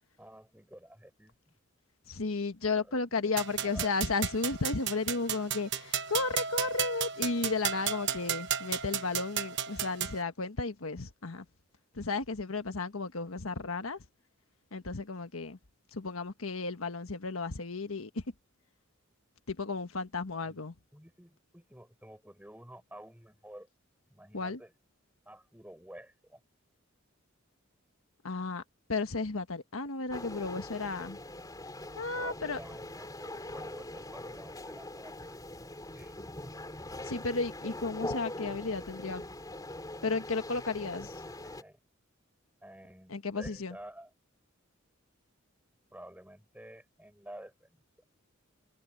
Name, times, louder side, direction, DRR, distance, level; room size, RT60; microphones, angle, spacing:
voice 1, 0.2-1.6 2.8-3.2 3.5-3.9 20.4-20.7 20.9-23.7 24.1-24.7 25.3-26.4 32.1-35.4 35.8-36.1 36.4-36.5 41.2-41.8 42.6-44.1 45.9-47.8, right 1 dB, 5° right, 6.0 m, -51 dB
voice 2, 2.1-11.4 11.9-14.0 14.7-15.6 15.9-18.2 19.5-20.7 24.3-24.6 28.2-28.6 28.9-31.2 32.0-32.6 37.0-39.2 40.0-41.2 43.1-43.8, left 3 dB, 80° left, 1.4 m, -33 dB
sound 1, 3.4-10.2, right 8 dB, 55° right, 1.1 m, -34 dB
sound 2, 30.1-41.6, left 1 dB, 20° left, 3.5 m, -42 dB
head